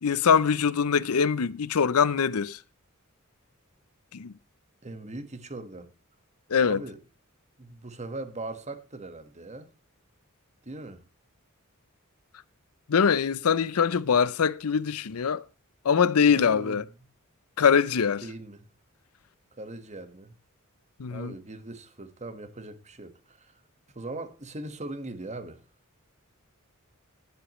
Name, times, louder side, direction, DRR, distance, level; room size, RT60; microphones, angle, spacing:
voice 1, 0.0-2.6 4.1-4.3 6.5-6.8 12.9-15.4 15.8-16.8 17.6-18.2 21.0-21.3, left 6 dB, 80° left, 0.6 m, -23 dB
voice 2, 4.8-5.9 6.6-7.0 7.6-9.7 10.6-11.0 16.3-16.8 18.2-18.7 19.5-20.4 21.1-23.6 23.9-25.6, right 2 dB, 30° right, 1.5 m, -40 dB
20.0 x 8.1 x 3.1 m
head